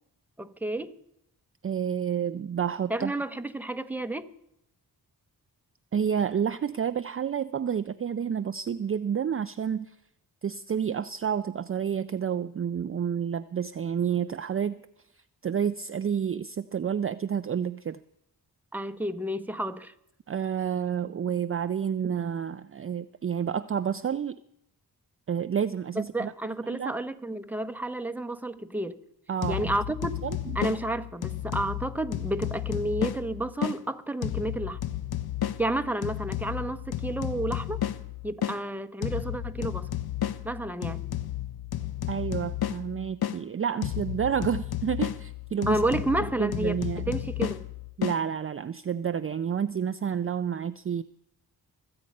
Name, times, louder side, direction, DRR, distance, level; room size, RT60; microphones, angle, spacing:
voice 1, 0.4-1.0 2.9-4.3 18.7-19.9 25.9-29.0 29.5-30.2 30.5-34.8 35.6-37.8 38.2-39.9 40.4-41.0 45.7-46.8 47.1-47.6, right 1 dB, 5° right, 0.9 m, -31 dB
voice 2, 1.6-3.1 5.9-10.0 10.4-14.8 15.4-18.0 20.3-24.4 25.3-26.3 26.7-26.9 29.3-29.7 30.2-30.6 42.1-45.8 46.4-47.1 48.0-51.0, right 8 dB, 35° right, 0.4 m, -29 dB
sound 1, 29.4-33.8 34.2-38.6 39.0-43.4 43.8-48.2, left 11 dB, 70° left, 0.7 m, -33 dB
23.0 x 8.0 x 5.3 m
cardioid pair, 60°, 38 cm